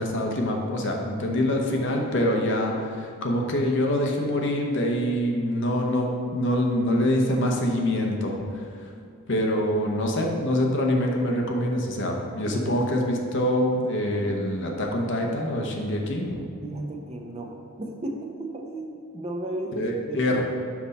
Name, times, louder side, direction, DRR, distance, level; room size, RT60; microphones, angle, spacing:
voice 1, 0.0-8.9 9.3-16.4 19.7-20.4, left 1 dB, 55° left, 1 dB, 0.8 m, -25 dB
voice 2, 16.6-20.4, right 1 dB, 30° right, 1 dB, 0.6 m, -34 dB
5.9 x 5.4 x 4.1 m, 2.3 s
head